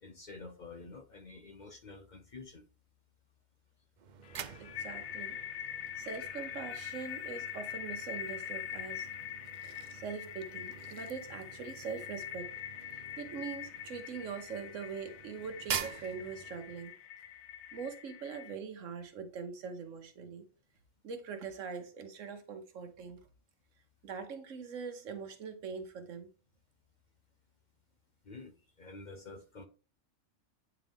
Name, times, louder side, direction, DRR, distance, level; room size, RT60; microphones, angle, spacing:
voice 1, 0.0-2.6 28.2-29.7, left 3 dB, 50° left, 0.6 m, -49 dB
sound 1, 4.0-17.0, right 8 dB, 60° right, 0.5 m, -46 dB
sound 2, 4.3-18.6, left 9 dB, 70° left, 0.9 m, -43 dB
voice 2, 4.6-5.4 6.0-9.1 9.9-12.5 12.9-16.9 17.7-20.5 21.0-23.3 24.0-26.3, right 5 dB, 80° right, 1.4 m, -42 dB
8.8 x 3.7 x 3.5 m
omnidirectional pair, 1.3 m